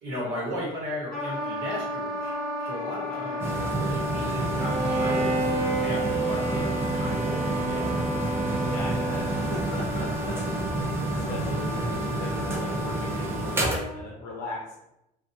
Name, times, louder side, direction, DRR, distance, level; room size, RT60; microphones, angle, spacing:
voice 1, 0.0-8.0 11.3-11.4, left 1 dB, 75° right, -6 dB, 1.0 m, -36 dB
Wind instrument woodwind instrument, 1.1-14.0, left 1 dB, 5° left, 1.0 m, -34 dB
voice 2, 3.1-3.4 8.6-10.4 10.8-14.8, left 2 dB, 80° left, -2 dB, 0.5 m, -39 dB
Switch on Water-heater, 3.4-13.8, right 2 dB, 15° right, 0.4 m, -30 dB
Bowed string instrument, 4.5-9.6, right 3 dB, 50° right, 0.9 m, -30 dB
2.6 x 2.3 x 2.6 m, 0.87 s
cardioid pair, 165°, 16 cm